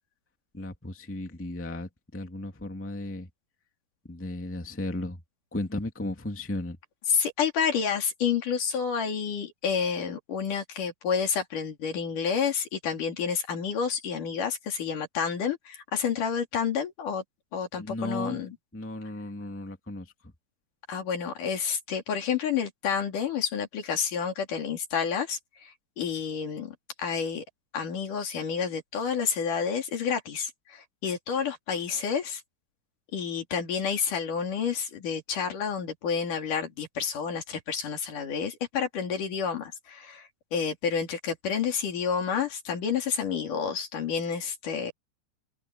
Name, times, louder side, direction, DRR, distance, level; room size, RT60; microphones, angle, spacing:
voice 1, 0.5-3.3 4.1-5.2 5.5-6.8 17.8-18.4 18.7-20.1, left 1 dB, 15° left, 0.5 m, -35 dB
voice 2, 7.1-17.2 17.5-18.6 20.9-27.4 27.7-32.4 33.1-44.9, left 6 dB, 50° left, 4.2 m, -29 dB
omnidirectional pair, 5.0 m